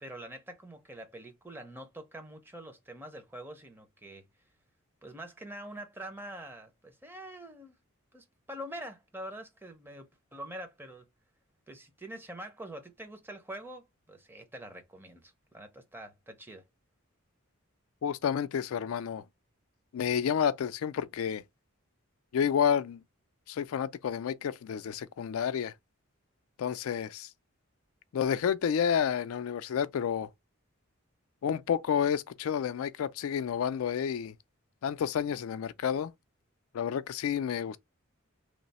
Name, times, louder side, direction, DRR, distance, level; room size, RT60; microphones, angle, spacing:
voice 1, 0.0-4.3 5.0-7.8 8.1-11.0 11.7-16.6, right 1 dB, 10° right, 0.6 m, -45 dB
voice 2, 18.0-19.2 19.9-21.4 22.3-23.0 23.5-25.7 26.6-27.3 28.1-30.3 31.4-34.3 34.8-36.1 36.7-37.8, left 8 dB, 80° left, 0.3 m, -30 dB
3.1 x 2.0 x 4.0 m
head